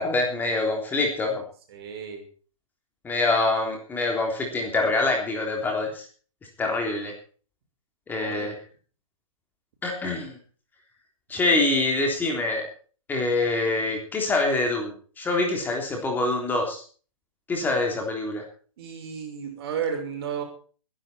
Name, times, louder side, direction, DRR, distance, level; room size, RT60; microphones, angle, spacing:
voice 1, 0.0-1.4 3.0-6.1 6.6-7.1 8.1-8.5 9.8-10.4 11.3-12.6 13.1-16.8 17.5-18.4, left 2 dB, 10° left, 1 dB, 3.6 m, -25 dB
voice 2, 1.7-2.2 8.1-8.5 18.8-20.4, right 7 dB, 50° right, 4 dB, 5.9 m, -33 dB
20.5 x 11.5 x 4.5 m, 0.41 s
hypercardioid pair, 145°, 17 cm